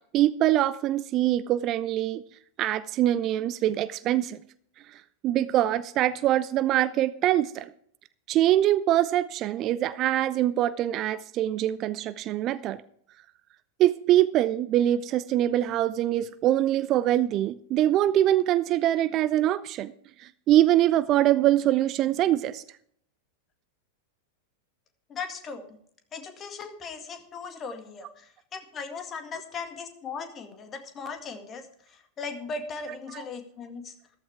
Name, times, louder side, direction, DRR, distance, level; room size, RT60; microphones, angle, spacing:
voice 1, 0.1-2.2 2.6-4.4 4.9-7.7 8.3-12.8 13.8-19.9 20.2-22.6 33.1-33.2, right 13 dB, 35° right, 17 dB, 0.5 m, -24 dB
voice 2, 25.1-25.7 26.1-31.6 32.2-33.9, left 4 dB, 25° left, 7 dB, 2.0 m, -38 dB
14.0 x 13.0 x 3.5 m, 0.64 s
figure-of-eight pair, 90°, 0 cm